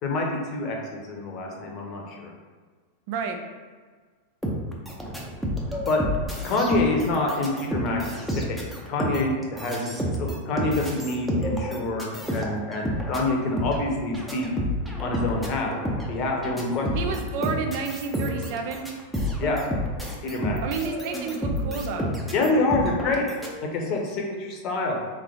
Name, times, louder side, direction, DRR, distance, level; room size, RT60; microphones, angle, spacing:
voice 1, 0.0-2.3 5.9-6.0 6.4-14.5 15.0-15.7 16.1-17.2 19.4-19.6 20.2-20.6 22.3-23.3 23.7-25.0, left 2 dB, 35° left, 0 dB, 0.9 m, -27 dB
voice 2, 3.1-3.4 16.9-18.9 20.6-22.1, right 5 dB, 50° right, 4 dB, 0.5 m, -30 dB
sound 1, 4.4-23.5, equal, 5° right, 0.7 m, -30 dB
3.5 x 3.3 x 3.7 m, 1.5 s
figure-of-eight pair, 90°, 0 cm